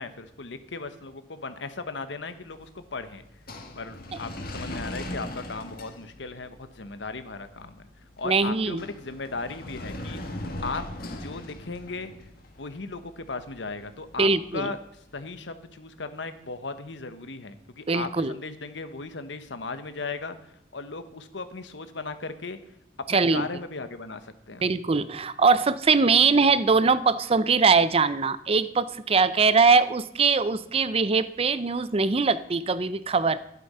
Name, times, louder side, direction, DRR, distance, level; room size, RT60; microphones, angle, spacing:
voice 1, 0.0-3.2 3.8-7.9 8.2-10.8 11.2-12.1 12.6-14.8 15.1-20.4 20.7-22.6 23.1-24.7, left 3 dB, 70° left, 11 dB, 1.1 m, -37 dB
sound 1, 2.3-15.4, left 1 dB, 55° left, 1.8 m, -41 dB
voice 2, 8.2-8.8 14.2-14.7 17.9-18.3 23.1-23.5 24.6-33.4, right 4 dB, 30° right, 15 dB, 0.5 m, -22 dB
12.0 x 11.5 x 5.6 m, 0.76 s
head